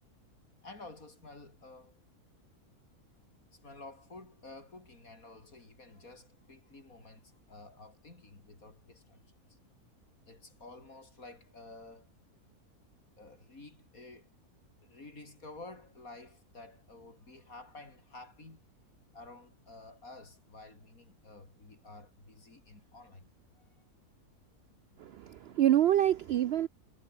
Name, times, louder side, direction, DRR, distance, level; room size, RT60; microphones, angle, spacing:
voice 1, 0.6-2.0 3.5-9.2 9.5-9.6 10.3-12.1 13.2-14.3 14.8-18.6 19.1-23.3 23.8-23.9, left 2 dB, 60° left, 5.2 m, -51 dB
voice 2, 25.0-26.7, right 11 dB, 90° right, 0.5 m, -26 dB
omnidirectional pair, 1.6 m